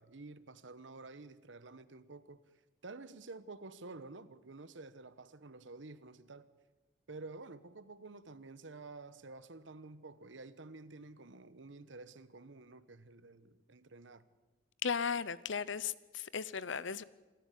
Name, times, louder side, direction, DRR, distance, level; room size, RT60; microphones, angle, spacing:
voice 1, 0.0-2.4 2.8-6.5 7.1-14.2, right 3 dB, 90° right, 1.1 m, -50 dB
voice 2, 14.8-17.0, left 6 dB, 90° left, 0.8 m, -36 dB
26.0 x 14.0 x 8.4 m
head